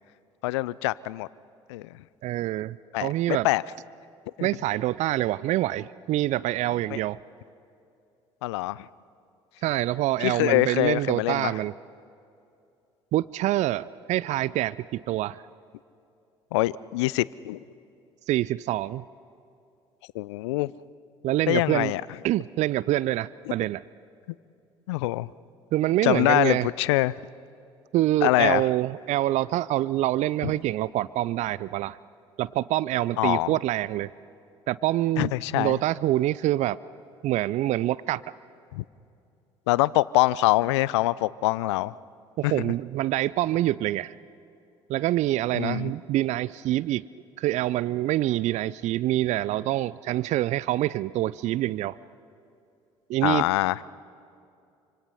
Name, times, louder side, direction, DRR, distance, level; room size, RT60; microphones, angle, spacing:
voice 1, 0.4-1.3 1.7-1.9 2.9-3.6 4.4-4.5 6.9-7.0 8.4-8.8 10.2-11.5 16.5-17.6 20.1-20.7 21.5-22.0 24.9-25.3 26.0-27.1 28.2-28.6 30.4-30.5 33.2-33.5 35.2-35.8 38.7-38.8 39.7-41.9 42.4-42.7 45.5-45.9 53.2-53.8, left 18 dB, 75° left, 21 dB, 0.5 m, -24 dB
voice 2, 2.2-3.5 4.4-7.2 9.6-11.7 13.1-15.4 18.3-19.0 21.2-21.9 22.2-23.8 25.7-26.7 27.9-32.0 32.4-34.1 34.7-36.8 37.2-38.3 42.4-44.2 44.9-47.0 47.4-52.0 53.1-53.5, right 15 dB, 55° right, 20 dB, 0.5 m, -26 dB
26.5 x 25.5 x 5.6 m, 2.6 s
hypercardioid pair, 60°, 15 cm